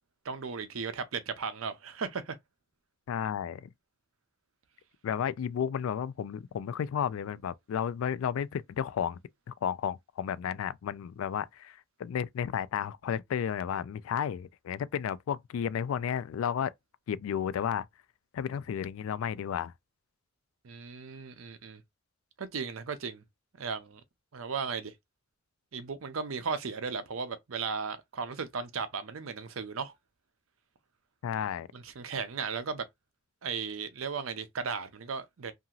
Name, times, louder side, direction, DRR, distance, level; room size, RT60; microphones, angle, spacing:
voice 1, 0.2-2.4 20.6-21.8 22.4-23.2 23.6-24.0 24.3-24.9 25.7-29.9 31.7-32.9 33.4-35.5, right 5 dB, 80° right, 0.6 m, -36 dB
voice 2, 3.1-3.7 5.0-9.2 9.5-16.7 17.1-17.9 18.3-19.7 31.2-31.7, left 8 dB, 85° left, 0.3 m, -32 dB
2.8 x 2.6 x 2.4 m
head